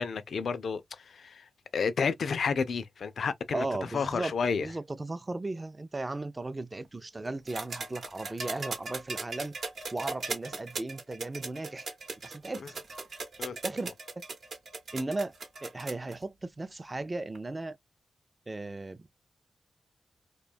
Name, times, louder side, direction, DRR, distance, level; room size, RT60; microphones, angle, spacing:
voice 1, 0.0-3.7 3.9-4.7 13.4-13.6, left 5 dB, 70° left, 0.3 m, -31 dB
voice 2, 3.5-4.3 4.6-9.5 9.9-11.9 12.2-12.6 13.6-13.9 14.9-15.3 15.6-17.8 18.5-19.1, right 2 dB, 30° right, 0.4 m, -36 dB
sound 1, 7.5-16.1 17.3-17.4, right 3 dB, 75° right, 0.9 m, -39 dB
2.6 x 2.2 x 2.3 m
cardioid pair, 50°, 0 cm